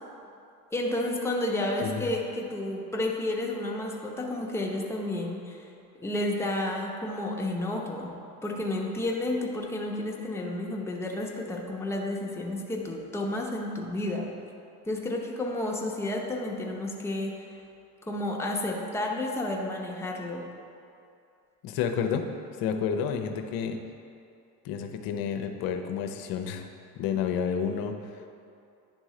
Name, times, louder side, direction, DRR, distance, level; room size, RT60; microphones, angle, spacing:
voice 1, 0.7-5.7 6.0-8.1 8.4-14.3 14.8-17.5 18.0-20.5, left 1 dB, 5° left, -1 dB, 0.8 m, -31 dB
voice 2, 21.6-22.3 22.6-23.8 24.6-26.7 27.0-27.9, left 7 dB, 50° left, 5 dB, 0.7 m, -30 dB
10.0 x 3.6 x 3.1 m, 2.6 s
hypercardioid pair, 70°, 47 cm